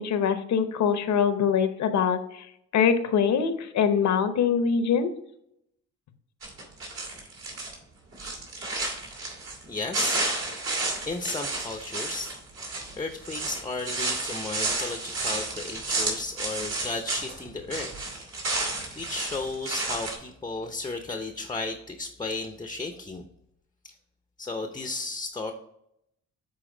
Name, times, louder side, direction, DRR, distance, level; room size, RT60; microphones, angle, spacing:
voice 1, 0.0-2.4 2.7-5.1, left 7 dB, 65° left, 9 dB, 0.8 m, -23 dB
sound 1, 6.4-7.7 8.1-9.6 9.9-17.4 17.7-20.1, right 3 dB, 60° right, 2.5 m, -31 dB
voice 2, 9.7-10.2 11.1-12.3 13.0-17.9 19.0-23.2 24.4-25.5, left 3 dB, 15° left, 5 dB, 0.7 m, -34 dB
7.2 x 4.1 x 3.8 m, 0.76 s
cardioid pair, 90°, 30 cm